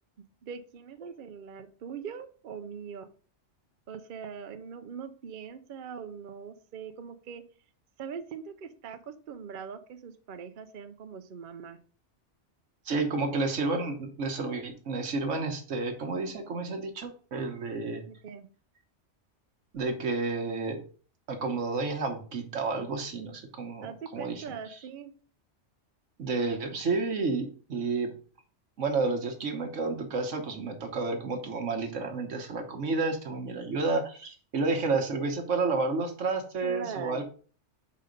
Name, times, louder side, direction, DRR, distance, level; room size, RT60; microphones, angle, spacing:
voice 1, 0.4-3.1 3.9-7.4 8.0-11.8 18.1-18.5 23.8-25.1 36.6-37.2, right 7 dB, 55° right, 8 dB, 0.7 m, -41 dB
voice 2, 12.9-18.0 19.7-20.8 21.3-24.4 26.2-28.1 28.8-37.2, right 3 dB, 80° right, 4 dB, 1.5 m, -30 dB
5.1 x 4.2 x 5.1 m, 0.40 s
omnidirectional pair, 1.2 m